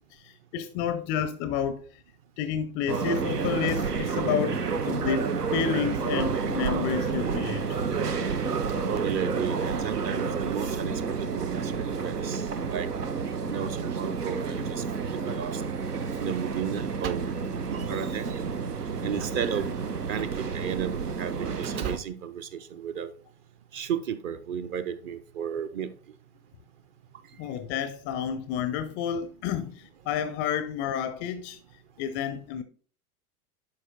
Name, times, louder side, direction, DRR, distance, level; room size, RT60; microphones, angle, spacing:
voice 1, 0.1-1.9 2.4-7.8 8.6-8.7 27.4-31.6 32.0-32.6, left 8 dB, 25° left, 0.4 m, -30 dB
sound 1, 2.9-22.0, right 5 dB, 90° right, 0.6 m, -30 dB
voice 2, 8.9-12.9 13.5-14.8 15.1-15.6 16.2-17.4 17.7-18.4 19.0-19.7 20.1-23.1 23.7-25.9 27.4-27.6, right 8 dB, 35° right, 0.6 m, -33 dB
11.0 x 4.8 x 2.6 m
figure-of-eight pair, 85°, 46 cm